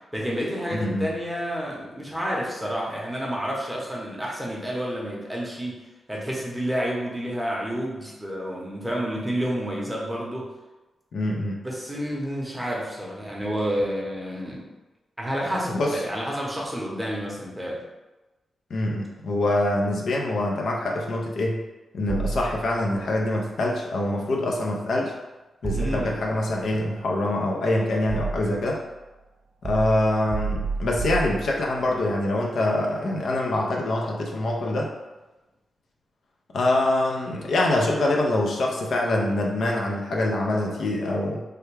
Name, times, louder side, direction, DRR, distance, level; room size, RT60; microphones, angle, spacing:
voice 1, 0.1-5.8 6.1-10.5 11.2-11.4 11.6-14.7 15.2-17.8 25.7-26.2, equal, 5° right, -4 dB, 0.7 m, -30 dB
voice 2, 11.1-11.6 15.7-16.0 18.7-21.6 21.9-25.1 25.6-28.8 29.6-34.9 36.5-41.4, left 1 dB, 70° left, -1 dB, 0.5 m, -25 dB
sound 1, 22.1-23.0 25.6-26.5 27.4-28.7 29.6-31.9, right 4 dB, 50° right, 0.4 m, -31 dB
3.3 x 2.2 x 3.2 m, 1.1 s
wide cardioid pair, 105°, 0 cm